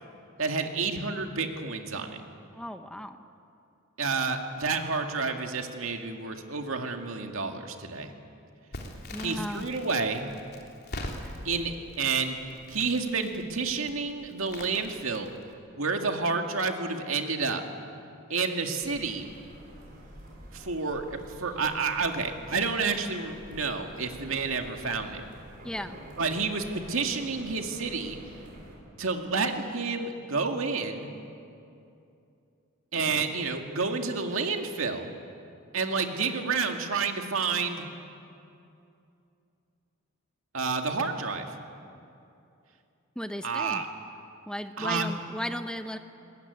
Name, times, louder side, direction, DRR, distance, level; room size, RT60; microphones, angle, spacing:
voice 1, 0.4-2.2 4.0-8.1 9.2-10.3 11.4-12.4 12.7-15.3 15.8-17.6 18.3-19.3 20.5-25.2 26.2-28.2 29.0-31.1 32.9-35.1 35.7-37.9 40.5-41.5 43.4-43.9 44.8-45.1, right 4 dB, 75° right, 4 dB, 2.2 m, -30 dB
voice 2, 2.5-3.2 9.1-9.7 25.6-26.0 43.2-43.8 44.5-46.0, equal, 5° left, 8 dB, 0.8 m, -35 dB
Crackle, 8.7-15.5, left 1 dB, 50° left, 3.2 m, -43 dB
sound 1, 18.8-28.8, right 1 dB, 45° right, 5.8 m, -48 dB
22.0 x 20.5 x 9.5 m, 2.6 s
head